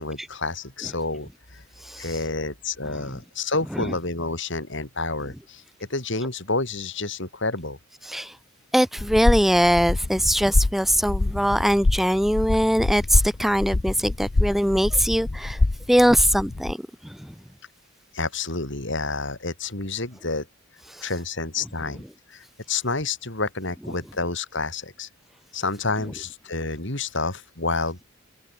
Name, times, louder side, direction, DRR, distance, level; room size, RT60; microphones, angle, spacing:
voice 1, 0.0-1.6 2.0-5.6 5.9-7.8 18.1-20.5 21.0-22.0 22.3-25.1 25.5-28.0, left 3 dB, 60° left, 4.6 m, -29 dB
voice 2, 8.7-15.6 15.9-16.8 17.0-17.3, equal, ahead, 0.9 m, -21 dB
sound 1, 9.0-16.7, left 2 dB, 35° left, 0.6 m, -25 dB
head